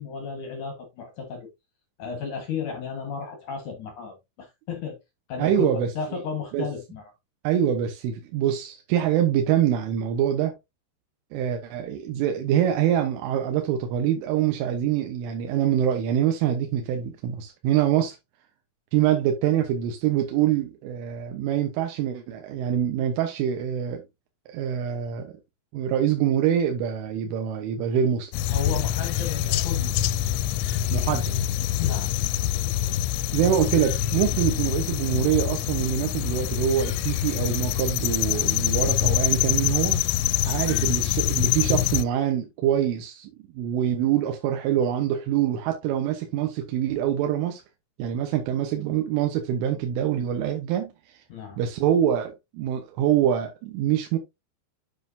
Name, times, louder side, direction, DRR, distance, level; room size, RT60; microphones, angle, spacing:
voice 1, 0.0-1.5 2.0-5.0 5.3-7.1 28.5-30.1 31.8-32.1 40.7-40.9 51.3-51.6, left 6 dB, 60° left, 2.2 m, -34 dB
voice 2, 5.4-5.9 6.5-6.7 7.5-10.6 11.3-18.2 18.9-24.0 24.5-25.4 25.7-28.3 30.9-31.3 33.3-40.0 40.4-47.6 48.0-51.2 51.6-54.2, right 10 dB, 90° right, 3.6 m, -25 dB
sound 1, 28.3-42.0, left 13 dB, 80° left, 2.7 m, -25 dB
7.5 x 7.3 x 2.6 m
omnidirectional pair, 5.5 m